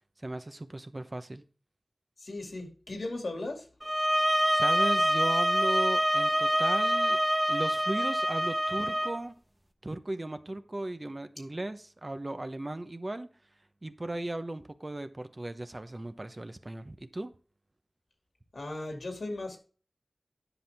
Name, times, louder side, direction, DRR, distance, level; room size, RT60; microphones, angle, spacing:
voice 1, 0.2-1.4 4.5-7.2 7.5-9.3 9.8-13.3 13.8-17.3, right 1 dB, 40° right, 0.9 m, -36 dB
voice 2, 2.2-3.7 18.5-19.6, left 2 dB, 90° left, 2.3 m, -37 dB
sound 1, 3.8-9.2, equal, 10° right, 1.1 m, -26 dB
10.0 x 5.8 x 3.4 m
wide cardioid pair, 50°, 0 cm